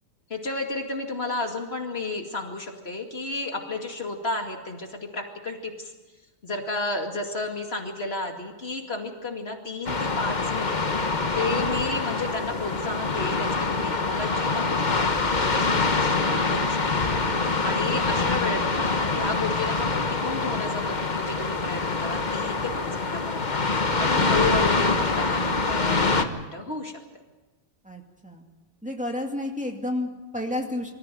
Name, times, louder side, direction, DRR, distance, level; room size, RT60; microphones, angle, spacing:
voice 1, 0.3-5.9 6.4-10.8 11.3-17.1 17.6-23.6 24.0-26.9, left 2 dB, 60° left, 3 dB, 2.6 m, -32 dB
sound 1, 9.8-26.2, left 3 dB, 40° left, 1.3 m, -25 dB
voice 2, 27.8-28.4 28.8-30.9, left 1 dB, 5° right, 1 dB, 2.3 m, -31 dB
24.0 x 14.5 x 9.2 m, 1.2 s
omnidirectional pair, 1.2 m